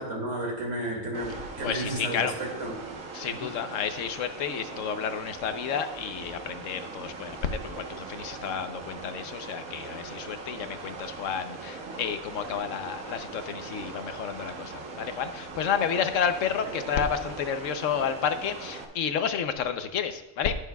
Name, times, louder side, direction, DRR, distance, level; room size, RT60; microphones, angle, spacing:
voice 1, 0.0-2.8 16.7-16.8, right 1 dB, 65° right, 0 dB, 2.7 m, -33 dB
sound 1, 1.1-18.8, right 4 dB, 85° right, 1.6 m, -41 dB
voice 2, 1.6-2.3 3.1-20.5, left 7 dB, 70° left, 9 dB, 1.1 m, -31 dB
19.5 x 6.6 x 2.3 m, 1.1 s
omnidirectional pair, 1.4 m